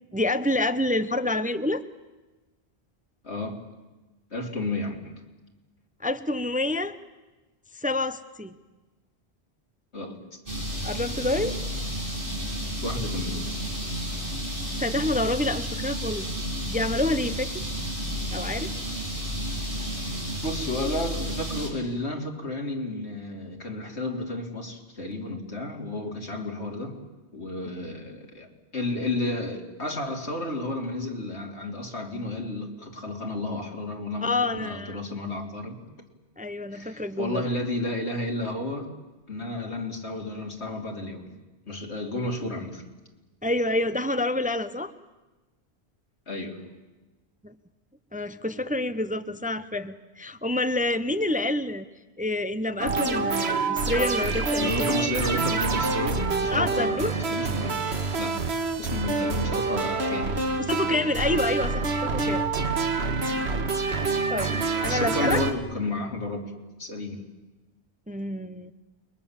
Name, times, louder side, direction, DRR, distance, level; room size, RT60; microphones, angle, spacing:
voice 1, 0.1-1.8 6.0-7.0 7.7-8.6 10.8-11.8 14.8-16.3 16.7-17.6 18.3-18.7 34.2-35.0 36.4-37.5 43.4-44.9 47.4-47.5 48.1-51.9 52.2-54.9 56.5-57.2 60.6-62.4 64.3-65.4 68.1-68.7, left 2 dB, 10° right, 11 dB, 0.6 m, -28 dB
voice 2, 3.2-3.6 4.3-5.2 9.9-10.2 12.8-13.5 20.4-27.0 27.3-35.8 36.7-38.9 39.3-41.3 41.7-42.8 46.3-46.6 54.6-57.8 58.2-61.0 64.9-66.5 66.8-67.2, left 2 dB, 80° left, 1 dB, 3.3 m, -32 dB
sound 1, 10.5-21.7, equal, 55° right, 5.7 m, -31 dB
sound 2, 52.8-65.5, right 4 dB, 75° right, 1.7 m, -27 dB
29.0 x 21.5 x 7.3 m, 1.1 s
omnidirectional pair, 1.1 m